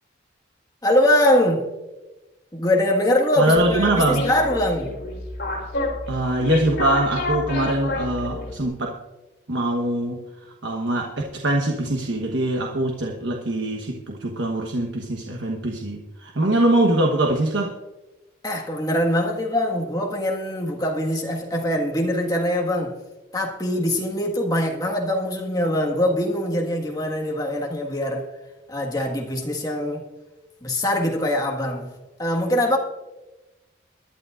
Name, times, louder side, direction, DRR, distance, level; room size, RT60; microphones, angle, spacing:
voice 1, 0.8-1.7 2.5-5.0 18.4-23.0 23.3-28.3 28.7-30.1 30.6-32.8, left 1 dB, 20° left, 1.6 m, -23 dB
voice 2, 3.4-4.3 6.1-9.0 9.5-17.8, right 1 dB, 85° right, 1.1 m, -23 dB
sound 1, 3.6-8.7, left 2 dB, 55° left, 3.6 m, -29 dB
22.0 x 11.5 x 2.5 m
head